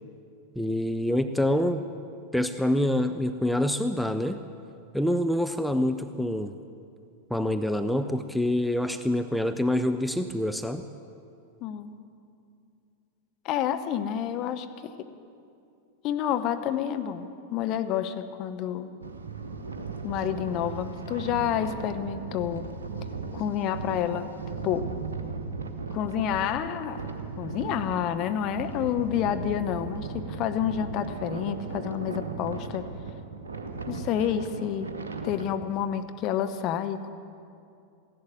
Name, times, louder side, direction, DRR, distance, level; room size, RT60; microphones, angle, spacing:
voice 1, 0.6-1.9 2.3-4.4 4.9-6.6 7.3-10.8, left 1 dB, ahead, 8 dB, 0.5 m, -26 dB
voice 2, 11.6-11.9 13.4-14.9 16.0-18.9 20.0-22.7 23.3-24.3 24.6-24.9 25.9-27.0 27.4-32.9 33.9-34.9 35.2-37.1, left 9 dB, 40° left, 9 dB, 0.8 m, -29 dB
sound 1, 19.0-35.4, right 4 dB, 70° right, 1.1 m, -37 dB
15.5 x 11.0 x 7.5 m, 2.5 s
figure-of-eight pair, 90°, 0 cm